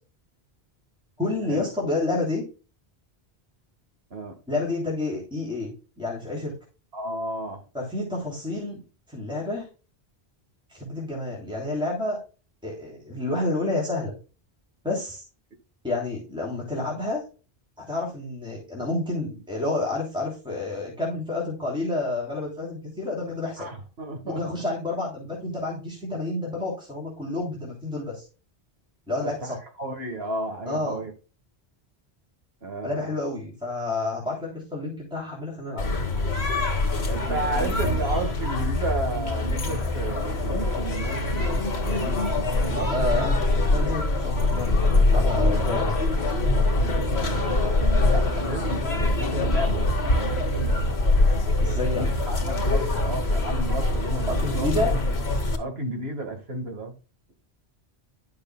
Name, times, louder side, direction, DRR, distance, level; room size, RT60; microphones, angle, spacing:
voice 1, 1.2-2.4 4.5-6.5 7.7-8.8 9.1-9.7 10.7-12.2 12.6-14.1 14.8-15.2 15.8-17.2 17.8-23.7 24.2-28.2 29.1-29.6 30.6-31.0 32.8-35.8 42.9-46.0 51.6-52.1 54.3-55.0, left 2 dB, 5° right, 3.2 m, -29 dB
voice 2, 6.9-7.6 23.6-24.4 29.2-31.1 32.6-33.2 37.1-42.1 42.6-42.9 47.3-50.8 52.0-54.7 55.6-56.9, right 2 dB, 70° right, 2.1 m, -33 dB
sound 1, 35.8-55.6, left 2 dB, 75° left, 1.8 m, -24 dB
10.5 x 6.7 x 2.3 m
omnidirectional pair, 1.1 m